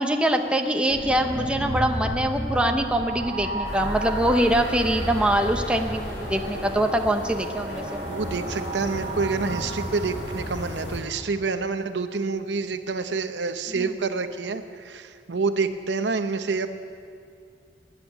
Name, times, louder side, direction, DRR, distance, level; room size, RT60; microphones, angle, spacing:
voice 1, 0.0-8.0 13.7-13.9, right 1 dB, 5° right, 4 dB, 0.7 m, -24 dB
sound 1, 0.9-11.3, right 1 dB, 25° right, 2.1 m, -33 dB
sound 2, 3.6-11.0, left 1 dB, 65° left, 2.8 m, -36 dB
voice 2, 8.1-16.7, right 4 dB, 75° right, 9 dB, 0.8 m, -28 dB
13.5 x 10.5 x 8.9 m, 2.3 s
head